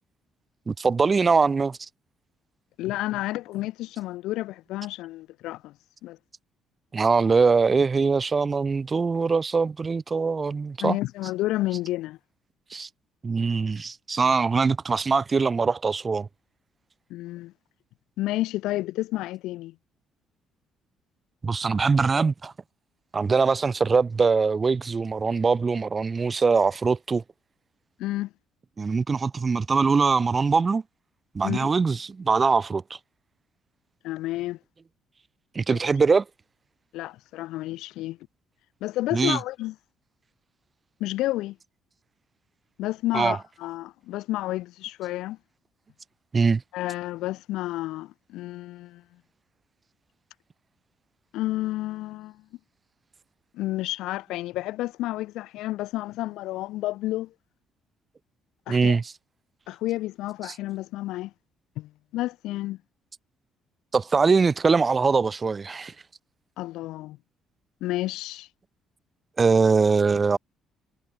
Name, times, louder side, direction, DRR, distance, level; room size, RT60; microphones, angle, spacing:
voice 1, 0.7-1.8 6.9-11.0 12.7-12.9 13.2-16.3 21.4-22.5 23.1-27.2 28.8-30.8 31.3-33.0 35.5-36.2 39.1-39.4 43.1-43.4 46.3-46.6 58.7-59.1 60.4-60.5 63.9-65.9 69.4-70.4, right 4 dB, 25° right, 0.9 m, -22 dB
voice 2, 2.8-5.7 6.0-6.2 10.8-12.2 17.1-17.5 18.2-19.7 28.0-28.3 31.4-31.7 34.0-34.6 35.7-35.8 36.9-38.2 38.8-39.7 41.0-41.6 42.8-45.4 46.7-49.0 51.3-52.3 53.5-57.3 58.7-59.0 59.7-61.3 61.8-62.8 66.6-67.2 67.8-68.5, left 17 dB, 90° left, 0.8 m, -30 dB
cardioid pair, 115°, 0 cm